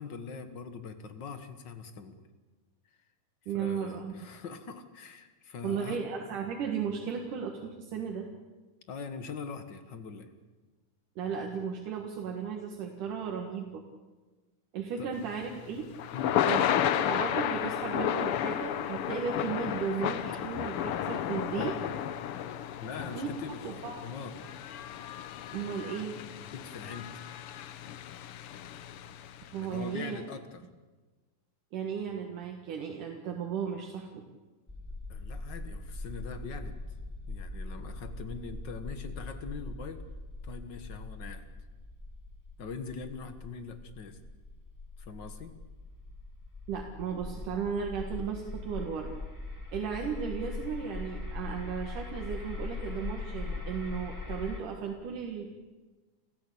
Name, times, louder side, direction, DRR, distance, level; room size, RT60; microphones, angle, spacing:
voice 1, 0.0-2.2 3.5-6.0 8.9-10.3 15.0-15.1 16.1-16.4 19.9-20.2 22.8-24.4 26.3-27.1 29.6-30.6 35.1-36.8 37.3-40.0 40.4-41.5 42.6-44.2 45.0-45.6, left 5 dB, 45° left, 9 dB, 1.6 m, -42 dB
voice 2, 3.5-4.1 5.6-8.3 11.2-13.8 14.7-15.9 16.4-21.8 23.1-23.3 23.6-24.1 25.5-26.2 29.5-30.2 31.7-34.2 46.7-49.1 49.7-55.6, right 6 dB, 75° right, 1 dB, 3.3 m, -35 dB
Thunder / Rain, 15.2-29.5, left 10 dB, 80° left, 1.2 m, -33 dB
sound 1, 34.7-54.6, left 2 dB, 10° left, 1.4 m, -41 dB
29.5 x 15.0 x 8.6 m, 1.3 s
omnidirectional pair, 3.7 m